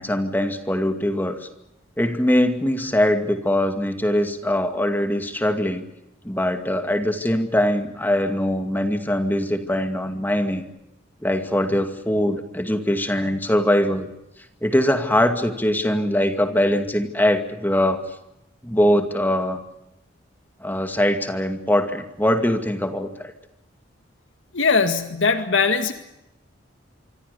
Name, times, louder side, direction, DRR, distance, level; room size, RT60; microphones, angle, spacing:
voice 1, 0.0-1.5 2.0-5.8 6.2-10.6 11.2-14.1 14.6-18.0 18.6-19.6 20.6-23.3, left 1 dB, 10° left, 6 dB, 2.3 m, -22 dB
voice 2, 24.5-25.9, left 4 dB, 80° left, 7 dB, 2.0 m, -20 dB
26.5 x 24.0 x 7.0 m, 0.87 s
head